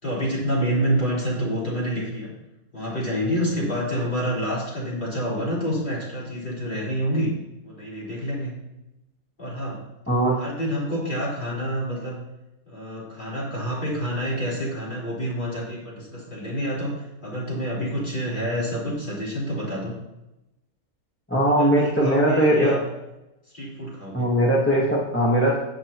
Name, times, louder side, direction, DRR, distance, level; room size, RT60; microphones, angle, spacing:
voice 1, 0.0-2.3 2.7-7.3 7.6-8.5 9.4-9.8 10.4-12.2 12.7-19.9 21.4-22.8 23.5-24.3, equal, 40° left, -7 dB, 4.5 m, -28 dB
voice 2, 21.3-22.8 24.1-25.6, right 1 dB, 10° left, -5 dB, 1.5 m, -20 dB
16.5 x 7.7 x 3.0 m, 0.95 s
omnidirectional pair, 1.4 m